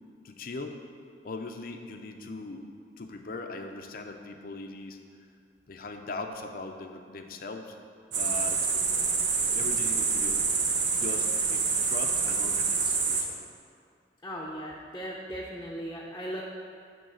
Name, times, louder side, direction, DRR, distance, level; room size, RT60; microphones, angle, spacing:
voice 1, 0.2-0.8 1.2-2.6 3.0-5.0 5.7-7.7 8.1-8.6 9.5-10.5 11.0-13.4, left 3 dB, 55° left, 5 dB, 0.6 m, -40 dB
sound 1, 8.1-13.2, right 5 dB, 80° right, 0.9 m, -27 dB
voice 2, 14.2-16.4, equal, 15° left, -4 dB, 0.7 m, -37 dB
8.0 x 4.0 x 6.3 m, 2.3 s
head